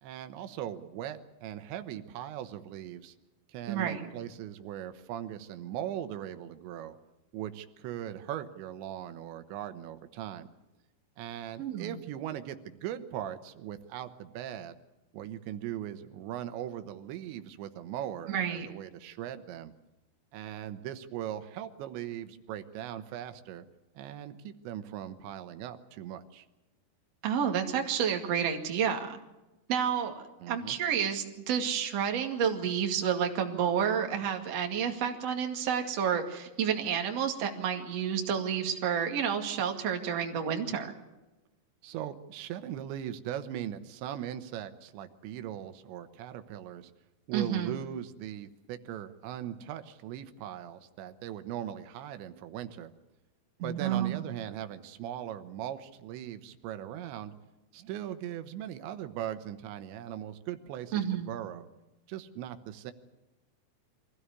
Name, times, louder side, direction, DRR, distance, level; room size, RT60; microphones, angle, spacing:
voice 1, 0.0-3.2 3.5-7.0 7.3-10.5 11.2-14.8 15.1-19.7 20.3-23.7 24.0-26.5 30.4-30.8 41.8-46.9 47.3-52.9 53.6-57.3 57.7-61.7 62.1-62.9, right 11 dB, 90° right, 10 dB, 3.5 m, -39 dB
voice 2, 3.7-4.1 11.6-12.0 18.3-18.7 27.2-29.2 29.7-30.1 30.5-40.9 47.3-47.8 53.6-54.2 60.9-61.3, right 8 dB, 45° right, 3 dB, 2.7 m, -30 dB
24.0 x 16.0 x 9.7 m, 1.0 s
omnidirectional pair, 5.0 m